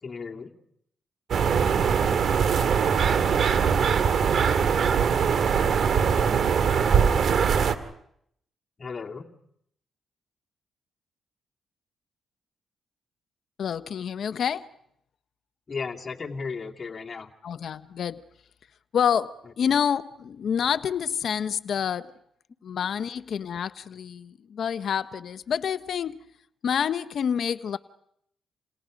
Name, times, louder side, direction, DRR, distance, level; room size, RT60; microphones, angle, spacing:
voice 1, 0.0-0.5 8.8-9.3 15.7-17.3, left 5 dB, 40° left, 0 dB, 2.6 m, -35 dB
sound 1, 1.3-7.8, right 6 dB, 65° right, 2.0 m, -22 dB
voice 2, 13.6-14.7 17.4-18.2 18.9-22.1 22.6-26.2 26.6-27.8, left 8 dB, 65° left, 13 dB, 0.9 m, -28 dB
29.5 x 29.0 x 5.2 m, 0.73 s
cardioid pair, 65°, 0 cm